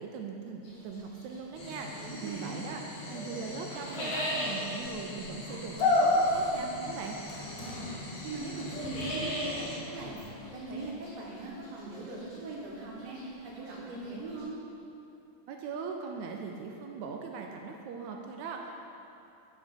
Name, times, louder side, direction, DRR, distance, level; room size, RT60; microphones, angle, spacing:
voice 1, 0.0-2.8 3.1-7.2 15.5-18.7, right 5 dB, 80° right, 2 dB, 1.7 m, -40 dB
sound 1, 0.6-2.6 3.0-14.4, equal, 45° left, 1.9 m, -40 dB
sound 2, 1.6-9.8, left 2 dB, 65° left, 2.3 m, -33 dB
voice 2, 2.0-2.7 7.4-10.2 10.4-14.6, right 2 dB, 65° right, -4 dB, 2.0 m, -40 dB
sound 3, 5.6-10.9, left 3 dB, 85° left, 2.2 m, -49 dB
9.0 x 4.1 x 5.1 m, 2.8 s
omnidirectional pair, 3.6 m